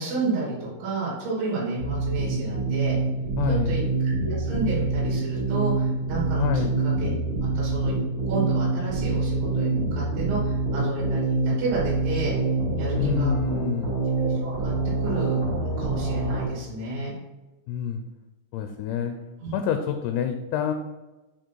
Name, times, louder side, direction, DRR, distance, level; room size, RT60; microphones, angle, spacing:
voice 1, 0.0-3.0 3.5-7.1 7.6-7.9 8.3-12.3 12.8-13.3 14.2-14.7 15.0-15.4 15.8-17.1 19.4-19.5, right 3 dB, 75° right, -6 dB, 5.2 m, -30 dB
sound 1, 1.8-16.5, right 3 dB, 55° right, 1.5 m, -26 dB
voice 2, 3.4-3.8 6.4-6.8 13.0-14.0 17.7-18.0 18.5-19.2 19.5-20.7, left 9 dB, 80° left, 6 dB, 2.5 m, -27 dB
10.5 x 4.0 x 4.6 m, 1.1 s
omnidirectional pair, 5.3 m